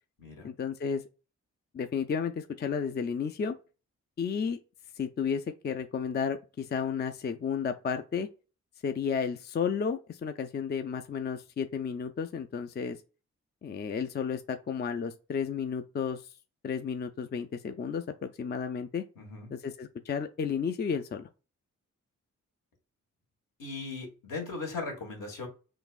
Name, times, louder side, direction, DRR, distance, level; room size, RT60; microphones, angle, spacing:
voice 1, 0.4-1.0 1.7-3.5 4.2-4.6 5.0-8.3 8.8-13.0 13.6-16.3 16.6-19.0 19.5-21.3, left 6 dB, 30° left, 0.4 m, -32 dB
voice 2, 19.2-19.5 23.6-25.5, left 3 dB, 70° left, 1.6 m, -38 dB
3.9 x 2.5 x 2.4 m
supercardioid pair, 45°, 33 cm